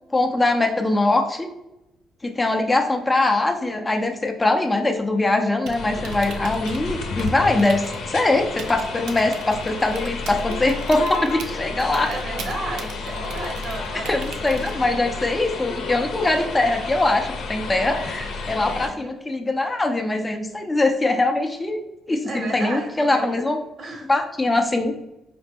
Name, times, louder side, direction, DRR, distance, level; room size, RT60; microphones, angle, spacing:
voice 1, 0.1-1.5 2.2-12.1 14.1-21.8 22.1-23.6 24.1-24.9, left 2 dB, 20° left, 4 dB, 0.5 m, -22 dB
Typing, 5.5-15.1, right 3 dB, 80° right, 0.5 m, -40 dB
sound 1, 5.7-18.9, left 3 dB, 85° left, 0.7 m, -31 dB
voice 2, 12.1-14.2 14.6-14.9 18.7-19.1 22.2-23.5 23.8-24.1, right 2 dB, 55° right, 2 dB, 1.0 m, -33 dB
4.9 x 2.1 x 3.4 m, 0.92 s
cardioid pair, 90°, 0 cm